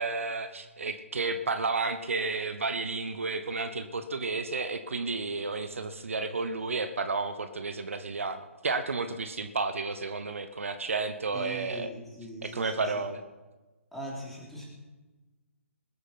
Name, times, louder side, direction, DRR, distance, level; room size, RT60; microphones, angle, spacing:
voice 1, 0.0-11.9 12.4-13.2, right 3 dB, 65° right, 9 dB, 1.0 m, -32 dB
voice 2, 5.5-5.9 11.3-12.9 13.9-14.7, right 1 dB, ahead, -3 dB, 3.4 m, -42 dB
20.5 x 8.3 x 5.8 m, 1.2 s
figure-of-eight pair, 135°, 8 cm